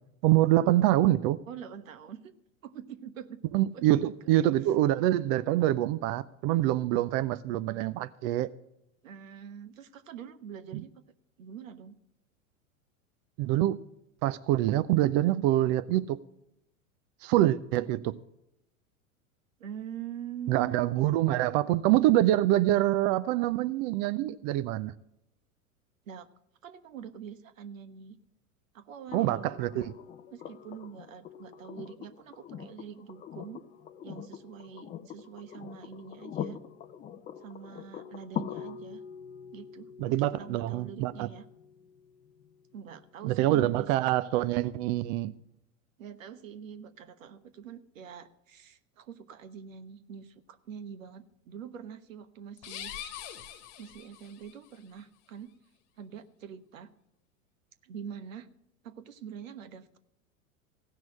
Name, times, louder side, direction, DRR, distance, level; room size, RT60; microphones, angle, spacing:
voice 1, 0.2-1.4 3.5-8.5 10.7-10.8 13.4-13.8 14.2-16.2 17.2-18.2 20.5-24.9 29.1-29.9 40.0-41.3 43.2-45.3, right 14 dB, 35° right, 0.4 m, -25 dB
voice 2, 1.5-2.3 2.6-3.4 3.7-3.9 9.0-11.0 11.4-12.0 19.6-20.9 21.2-21.3 26.1-26.3 26.6-28.2 28.7-29.6 30.3-33.6 34.0-36.6 37.4-39.0 39.5-41.4 42.7-43.9 46.0-52.9 53.8-55.5 56.0-56.9 57.8-58.5 58.8-60.0, right 8 dB, 70° right, 1.2 m, -44 dB
sound 1, 29.1-43.1 44.8-44.9, left 8 dB, 20° left, 0.6 m, -43 dB
sound 2, 52.6-54.6, left 10 dB, 45° left, 1.4 m, -43 dB
16.5 x 6.1 x 8.5 m
figure-of-eight pair, 90°, 42 cm